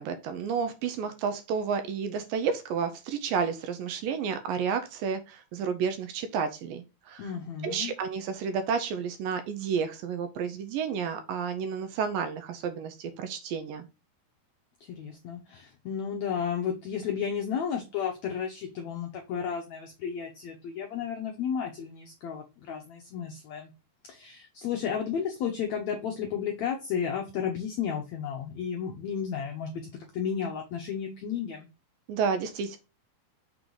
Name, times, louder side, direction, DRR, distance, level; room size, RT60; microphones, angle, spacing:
voice 1, 0.0-7.3 7.6-13.9 32.1-32.8, right 6 dB, 75° right, 8 dB, 2.2 m, -31 dB
voice 2, 7.2-7.9 14.9-23.7 24.1-31.7, left 7 dB, 80° left, 2 dB, 1.6 m, -33 dB
6.2 x 3.9 x 4.7 m, 0.29 s
omnidirectional pair, 4.4 m